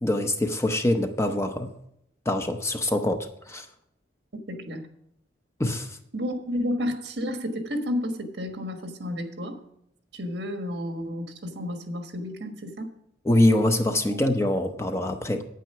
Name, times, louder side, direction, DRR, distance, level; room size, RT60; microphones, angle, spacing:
voice 1, 0.0-1.7 2.3-3.7 5.6-6.0 13.2-15.4, left 1 dB, 15° left, 0.7 m, -24 dB
voice 2, 4.3-4.8 6.1-9.6 10.1-12.9, left 1 dB, 60° right, 1.5 m, -31 dB
9.2 x 9.1 x 5.7 m
head